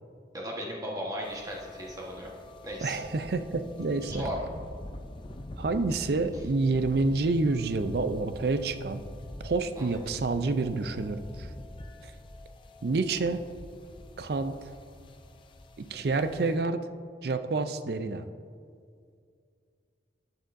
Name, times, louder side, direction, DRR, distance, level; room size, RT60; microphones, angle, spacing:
voice 1, 0.3-2.3 2.6-3.0 4.0-4.3 9.8-10.1, equal, 20° right, -2 dB, 1.2 m, -36 dB
sound 1, 1.2-16.6, left 1 dB, 25° left, 0.5 m, -45 dB
voice 2, 2.8-4.2 5.6-9.0 9.4-11.5 12.0-12.1 12.8-13.4 14.2-14.6 15.8-16.8 17.2-18.3, right 3 dB, 60° right, 10 dB, 0.5 m, -28 dB
10.0 x 9.8 x 2.6 m, 2.2 s
head